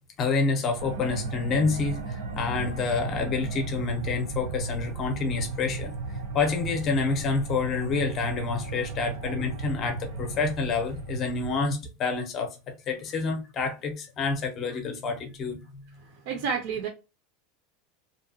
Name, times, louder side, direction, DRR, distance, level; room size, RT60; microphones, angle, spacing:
voice 1, 0.2-5.9 6.3-12.6 12.9-15.8, left 4 dB, 25° left, 0.6 m, -28 dB
sound 1, 0.8-11.5, right 3 dB, 80° right, 0.8 m, -35 dB
voice 2, 16.3-16.9, right 6 dB, 50° right, 0.5 m, -29 dB
2.7 x 2.1 x 2.6 m
supercardioid pair, 175°, 0 cm